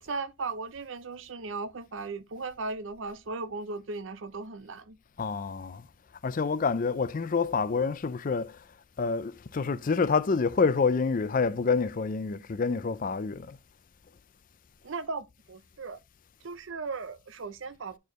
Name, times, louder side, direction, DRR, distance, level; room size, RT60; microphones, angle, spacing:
voice 1, 0.0-5.0 14.8-16.0 16.4-18.0, right 3 dB, 70° right, 0.6 m, -37 dB
voice 2, 5.2-5.9 6.2-8.7 9.0-13.6, left 4 dB, 40° left, 0.4 m, -27 dB
8.3 x 4.4 x 3.0 m
head